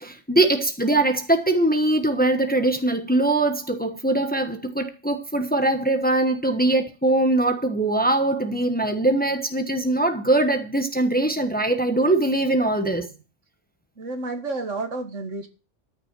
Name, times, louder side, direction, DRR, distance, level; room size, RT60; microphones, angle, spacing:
voice 1, 0.0-13.1, right 2 dB, 10° left, 1.1 m, -22 dB
voice 2, 14.0-15.5, right 3 dB, 85° right, 2.1 m, -30 dB
13.5 x 6.0 x 6.7 m
omnidirectional pair, 1.2 m